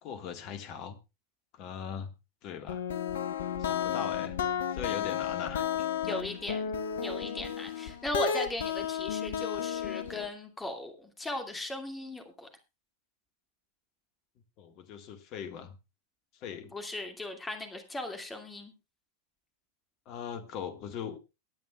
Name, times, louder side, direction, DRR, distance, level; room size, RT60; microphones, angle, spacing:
voice 1, 0.0-1.0 1.5-2.1 2.4-2.8 3.6-4.4 4.7-5.7 14.6-15.8 16.4-16.7 20.0-21.2, left 8 dB, 40° left, 10 dB, 1.7 m, -40 dB
sound 1, 2.7-10.3, left 9 dB, 60° left, 1.0 m, -33 dB
voice 2, 6.0-12.5 16.6-18.7, left 1 dB, 10° left, 6 dB, 2.4 m, -38 dB
23.5 x 9.4 x 2.4 m, 0.27 s
figure-of-eight pair, 90°, 0 cm